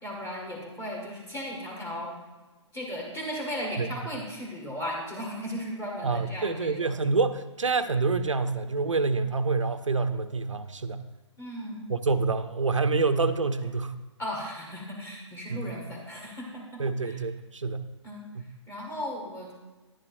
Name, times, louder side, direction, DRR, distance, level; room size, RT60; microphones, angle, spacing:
voice 1, 0.0-2.2 2.7-6.9 11.4-11.9 14.2-17.2 18.0-19.5, equal, 20° left, -4 dB, 1.9 m, -36 dB
voice 2, 6.0-11.0 11.9-14.0 15.5-15.9 16.8-17.8 18.3-18.4, right 4 dB, 85° right, 10 dB, 0.6 m, -27 dB
10.5 x 9.9 x 2.6 m, 1.2 s
figure-of-eight pair, 125°, 16 cm